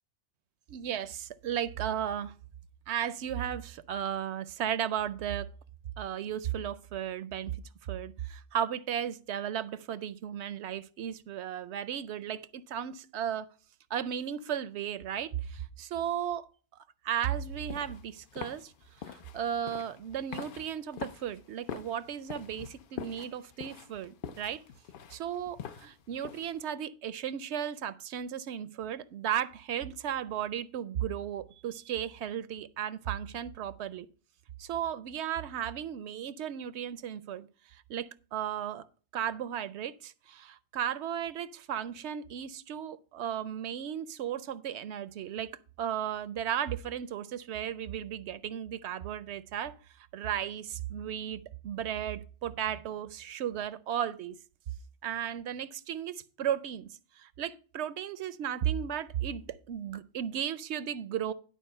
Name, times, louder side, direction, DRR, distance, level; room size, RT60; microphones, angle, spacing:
voice 1, 0.7-2.3 2.9-5.5 6.0-7.5 7.8-13.5 13.9-16.5 17.0-18.7 19.0-24.6 25.1-34.1 34.6-37.5 37.9-38.8 39.1-45.5 45.8-49.7 50.1-54.4 55.0-56.9 57.2-61.3, right 9 dB, 75° right, 0.8 m, -35 dB
sound 1, 17.4-26.6, left 8 dB, 55° left, 0.7 m, -45 dB
11.0 x 4.8 x 5.4 m
omnidirectional pair, 1.2 m